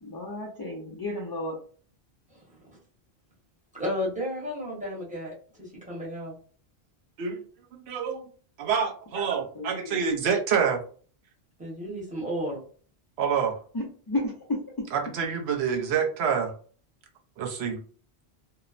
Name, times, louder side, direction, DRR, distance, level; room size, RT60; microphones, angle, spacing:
voice 1, 0.0-1.6 9.1-10.0 13.7-14.8, left 1 dB, 35° left, -2 dB, 0.3 m, -33 dB
voice 2, 3.7-6.3 11.6-12.6, equal, 10° right, -6 dB, 1.0 m, -33 dB
voice 3, 7.7-8.2 8.6-10.8 13.2-13.5 14.9-16.5 17.4-17.8, right 6 dB, 75° right, 2 dB, 0.9 m, -27 dB
2.8 x 2.0 x 2.4 m, 0.43 s
omnidirectional pair, 1.1 m